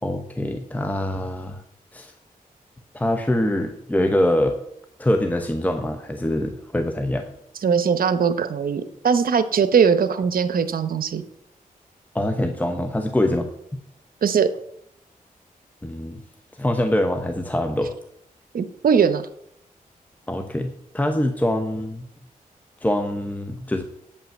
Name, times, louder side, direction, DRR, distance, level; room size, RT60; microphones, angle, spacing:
voice 1, 0.0-1.6 1.9-2.1 2.9-4.6 5.0-7.3 12.1-13.5 15.8-16.2 16.6-17.9 20.3-22.1 22.8-23.8, left 1 dB, 10° left, 6 dB, 0.9 m, -24 dB
voice 2, 7.6-11.2 14.2-14.5 18.5-19.2, right 6 dB, 75° right, 11 dB, 0.9 m, -20 dB
8.6 x 5.6 x 7.7 m, 0.74 s
cardioid pair, 80°, 15 cm